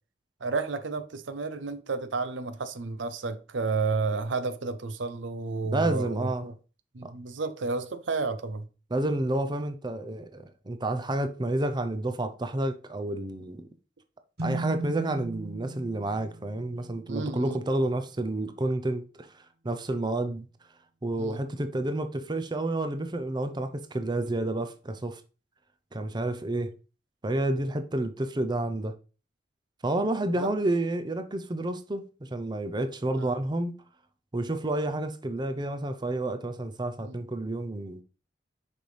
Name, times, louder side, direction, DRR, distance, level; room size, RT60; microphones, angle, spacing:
voice 1, 0.4-6.5 6.9-8.7 17.1-17.6 21.2-21.4 30.4-30.5 33.2-33.4 37.0-37.2, right 4 dB, 85° right, 0.7 m, -31 dB
voice 2, 5.6-6.5 7.0-7.1 8.9-13.7 14.4-20.5 21.0-25.2 25.9-26.7 27.2-28.9 29.8-33.7 34.3-38.0, right 2 dB, 25° right, 0.6 m, -30 dB
sound 1, 14.4-17.9, right 2 dB, 60° right, 1.2 m, -38 dB
6.5 x 5.3 x 3.3 m
head